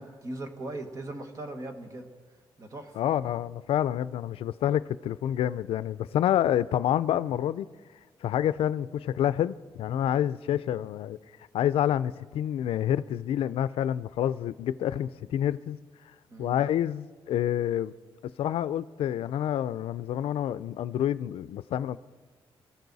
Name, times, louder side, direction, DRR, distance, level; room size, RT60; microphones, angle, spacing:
voice 1, 0.0-2.1 2.6-3.0 16.3-16.6, right 2 dB, 35° right, 1.4 m, -39 dB
voice 2, 3.0-7.7 8.2-11.2 11.5-15.8 16.4-17.9 18.4-22.0, left 11 dB, 90° left, 0.4 m, -28 dB
23.0 x 13.0 x 4.0 m
wide cardioid pair, 170°, 9 cm